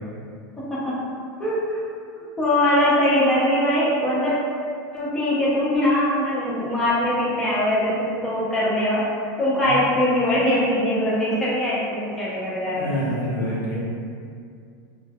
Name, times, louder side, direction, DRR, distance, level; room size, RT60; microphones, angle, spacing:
voice 1, 1.4-1.8 2.2-4.3 4.9-9.0 9.4-13.0, left 1 dB, 5° left, -9 dB, 0.3 m, -22 dB
voice 2, 12.8-13.8, equal, 60° left, -5 dB, 0.7 m, -27 dB
2.1 x 2.1 x 3.3 m, 2.3 s
supercardioid pair, 175°, 11 cm